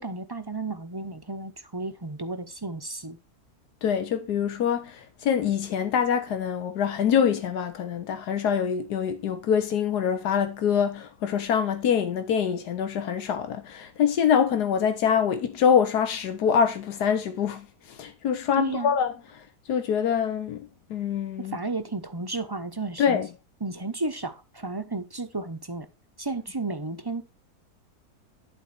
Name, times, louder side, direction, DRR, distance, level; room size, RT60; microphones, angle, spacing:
voice 1, 0.0-3.2 18.6-18.9 21.4-23.2 23.6-25.9 26.2-27.2, right 3 dB, 25° right, 0.6 m, -33 dB
voice 2, 3.8-21.6 23.0-23.3, left 7 dB, 90° left, 1.6 m, -25 dB
11.5 x 4.2 x 5.7 m
omnidirectional pair, 1.7 m